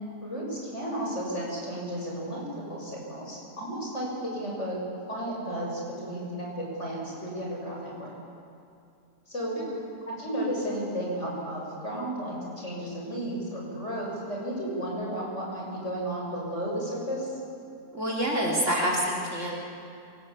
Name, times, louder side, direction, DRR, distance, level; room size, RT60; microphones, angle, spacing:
voice 1, 0.2-2.4 2.7-4.8 5.1-8.1 9.3-9.6 10.1-17.3, right 1 dB, 40° left, -3 dB, 6.9 m, -33 dB
voice 2, 17.9-19.6, equal, 45° right, -2 dB, 3.4 m, -27 dB
26.0 x 19.0 x 8.4 m, 2.6 s
omnidirectional pair, 1.8 m